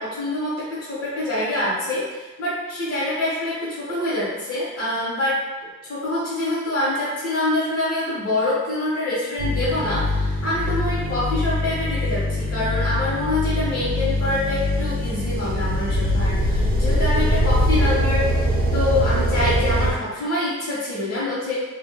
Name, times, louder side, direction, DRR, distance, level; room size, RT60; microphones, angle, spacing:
voice 1, 0.0-5.4 5.9-21.5, left 1 dB, 50° left, -10 dB, 1.0 m, -25 dB
sound 1, 9.4-19.9, left 1 dB, 30° right, 0.5 m, -22 dB
2.4 x 2.1 x 2.9 m, 1.2 s
cardioid pair, 80°, 29 cm